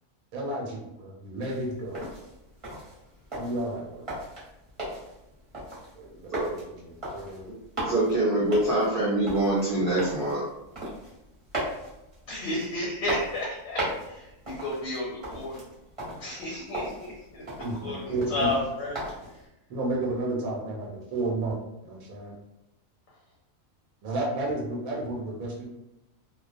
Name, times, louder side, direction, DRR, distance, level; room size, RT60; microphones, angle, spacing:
voice 1, 0.3-2.1 3.4-4.0 5.9-7.5 17.6-18.5 19.7-21.6 21.8-22.3 24.0-25.6, right 2 dB, 90° right, -1 dB, 1.1 m, -32 dB
sound 1, 1.4-19.4, right 1 dB, 30° right, 0.8 m, -38 dB
voice 2, 7.9-10.4, right 1 dB, 60° right, -7 dB, 0.6 m, -24 dB
voice 3, 12.3-15.7 16.2-19.0 19.3-19.4, left 1 dB, 65° left, -4 dB, 0.7 m, -32 dB
2.4 x 2.1 x 2.4 m, 0.90 s
omnidirectional pair, 1.4 m